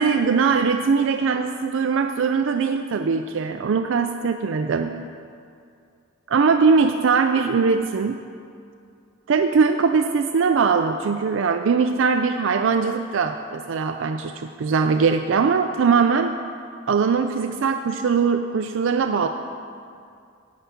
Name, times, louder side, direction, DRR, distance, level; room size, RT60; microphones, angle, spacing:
voice 1, 0.0-4.9 6.3-8.2 9.3-16.4 16.9-19.3, right 5 dB, 65° right, 6 dB, 0.4 m, -21 dB
9.4 x 5.7 x 8.3 m, 2.4 s
head